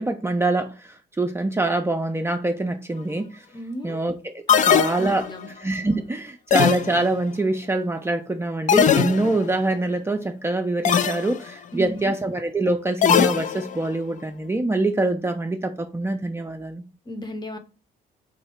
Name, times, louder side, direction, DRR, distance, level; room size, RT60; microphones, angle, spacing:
voice 1, 0.0-3.4 3.8-5.3 5.6-16.8, right 2 dB, 15° right, 0.5 m, -25 dB
voice 2, 3.5-4.0 4.5-5.5 11.7-12.1 17.1-17.6, equal, 25° left, 0.8 m, -34 dB
sound 1, 4.5-5.5 6.5-7.3 8.7-9.5 10.8-11.4 13.0-13.9, left 8 dB, 45° left, 0.4 m, -20 dB
3.3 x 2.6 x 4.3 m
cardioid pair, 75°, 18 cm